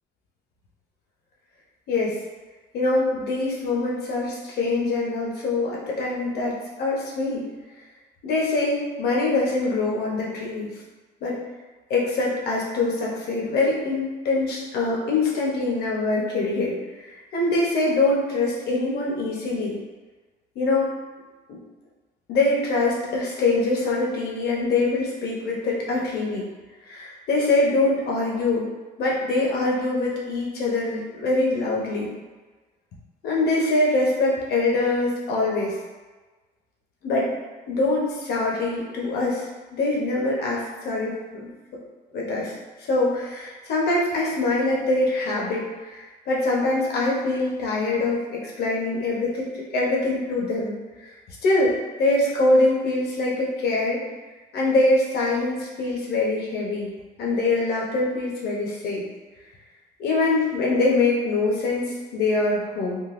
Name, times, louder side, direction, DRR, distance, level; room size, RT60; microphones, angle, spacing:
voice 1, 2.7-7.5 8.2-10.7 11.2-11.4 11.9-19.8 20.6-20.9 21.5-21.6 22.3-26.5 26.9-28.7 29.0-32.1 33.2-35.7 37.0-37.3 37.7-39.5 39.7-41.5 42.1-42.5 42.9-50.7 51.4-54.0 54.5-59.0 60.0-63.0, left 2 dB, 70° left, -4 dB, 0.9 m, -24 dB
3.8 x 2.4 x 2.5 m, 1.3 s
cardioid pair, 110°, 17 cm